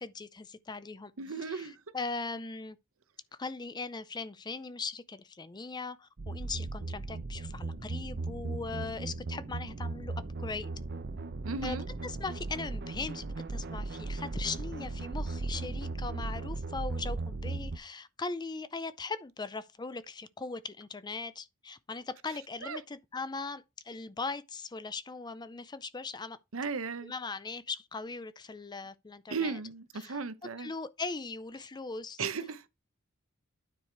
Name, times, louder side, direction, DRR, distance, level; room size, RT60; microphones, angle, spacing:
voice 1, 0.0-1.1 1.5-2.8 3.3-10.7 11.6-13.2 13.5-26.4 27.0-29.6 29.9-32.2, left 4 dB, 20° left, 0.5 m, -39 dB
voice 2, 1.2-1.9 11.4-11.9 22.6-22.8 26.5-27.1 29.3-30.7 32.2-32.6, right 4 dB, 85° right, 0.9 m, -36 dB
sound 1, 6.2-17.8, right 3 dB, 55° right, 0.7 m, -37 dB
9.6 x 4.8 x 4.6 m
head